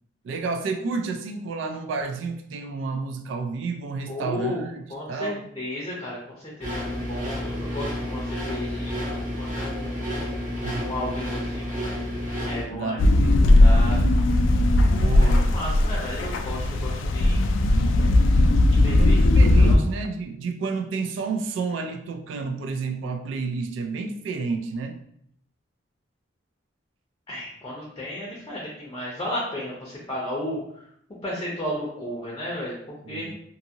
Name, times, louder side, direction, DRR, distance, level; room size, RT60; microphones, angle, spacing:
voice 1, 0.2-4.8 5.1-5.4 10.6-10.9 12.7-13.4 14.8-15.6 19.0-25.0 33.1-33.3, right 4 dB, 70° right, 6 dB, 0.3 m, -31 dB
voice 2, 4.1-4.6 4.9-10.5 10.8-11.7 12.4-14.0 14.9-17.4 18.7-19.8 27.3-30.9 31.2-33.3, left 1 dB, 25° left, -4 dB, 0.6 m, -34 dB
sound 1, 6.6-12.6, equal, 40° right, 1.1 m, -30 dB
sound 2, 13.0-19.8, left 1 dB, 75° left, 0.3 m, -18 dB
2.6 x 2.5 x 2.7 m, 0.70 s
head